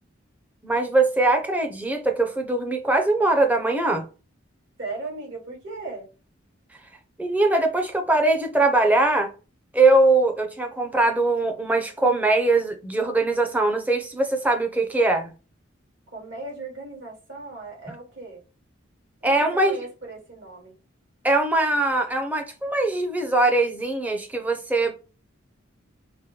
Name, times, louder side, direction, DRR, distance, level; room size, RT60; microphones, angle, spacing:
voice 1, 0.6-4.0 7.2-9.3 9.7-15.3 19.2-19.8 21.2-24.9, right 2 dB, 10° right, 0.6 m, -21 dB
voice 2, 4.8-6.1 16.1-18.4 19.2-20.8, right 3 dB, 60° right, 2.1 m, -37 dB
4.8 x 2.2 x 3.1 m
head